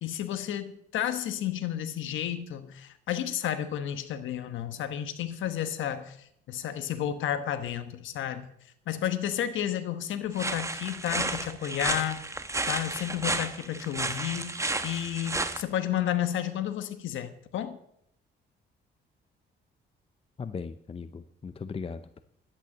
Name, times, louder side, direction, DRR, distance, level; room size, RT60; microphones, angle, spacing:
voice 1, 0.0-8.5 8.9-12.2 12.7-14.5 14.8-17.8, left 10 dB, 80° left, 10 dB, 1.2 m, -32 dB
sound 1, 10.4-15.6, right 2 dB, 15° right, 1.2 m, -32 dB
voice 2, 20.4-22.2, left 5 dB, 30° left, 11 dB, 0.7 m, -38 dB
11.5 x 9.1 x 7.3 m, 0.72 s
cardioid pair, 90°, 20 cm